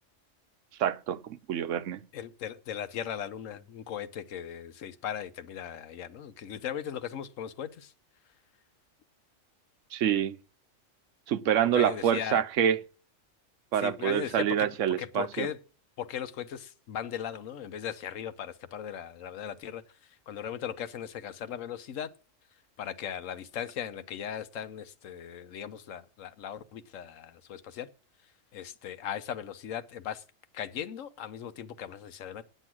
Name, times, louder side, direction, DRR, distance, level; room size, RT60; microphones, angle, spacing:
voice 1, 0.8-2.0 9.9-10.4 11.3-12.8 13.7-15.5, right 9 dB, 75° right, 1.1 m, -27 dB
voice 2, 2.1-7.9 11.7-12.4 13.8-14.7 15.0-15.6 16.0-19.8 20.3-22.1 22.8-27.9 28.5-30.2 30.5-32.4, left 9 dB, 85° left, 1.2 m, -38 dB
9.2 x 7.8 x 6.1 m
omnidirectional pair, 1.3 m